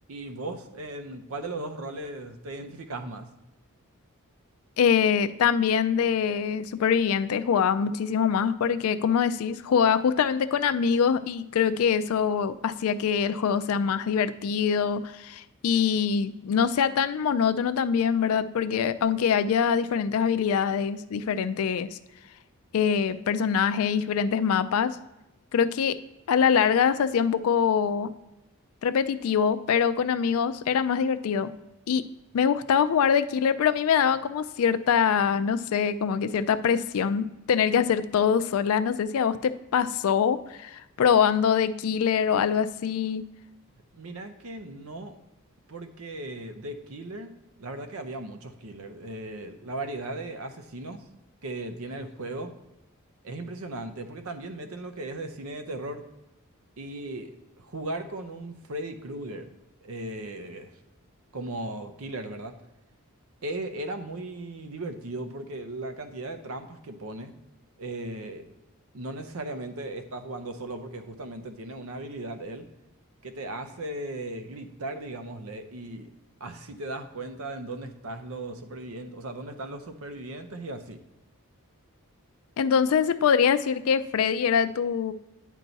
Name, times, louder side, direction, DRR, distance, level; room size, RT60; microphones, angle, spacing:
voice 1, 0.1-3.3 43.9-45.2 45.7-47.3 47.6-51.0 51.4-52.5 53.2-56.0 56.8-59.5 59.8-60.7 61.3-62.5 63.4-67.3 67.8-68.5 68.9-72.7 73.2-76.1 76.4-81.0, right 2 dB, 75° right, 8 dB, 0.7 m, -37 dB
voice 2, 4.8-22.0 22.7-25.0 25.5-26.0 26.3-28.1 28.8-31.5 31.9-32.0 32.3-43.2 82.6-85.1, left 7 dB, 75° left, 12 dB, 0.4 m, -24 dB
9.2 x 4.5 x 4.0 m, 0.97 s
head